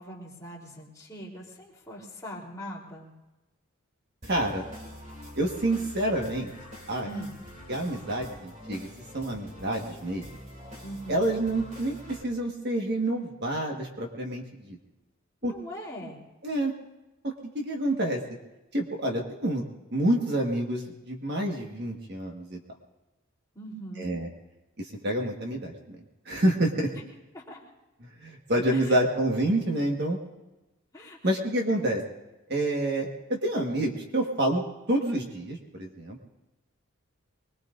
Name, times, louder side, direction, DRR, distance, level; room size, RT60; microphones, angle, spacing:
voice 1, 0.0-3.1 7.0-7.3 10.8-11.3 15.4-16.2 23.5-24.1 26.9-27.0 27.3-27.6 28.7-28.9 30.9-31.2, equal, 15° left, -4 dB, 3.5 m, -41 dB
sound 1, 4.2-12.2, equal, 35° right, 2.8 m, -45 dB
voice 2, 4.3-4.6 5.4-6.5 6.9-7.1 7.7-8.9 9.1-10.2 11.1-14.8 15.4-15.5 16.4-16.7 17.2-18.2 18.7-19.6 19.9-22.6 24.0-24.3 25.0-26.0 26.2-26.9 28.2-30.2 31.2-32.0 32.5-36.2, right 1 dB, 50° right, 1 dB, 1.5 m, -28 dB
24.5 x 20.5 x 2.6 m, 1.0 s
head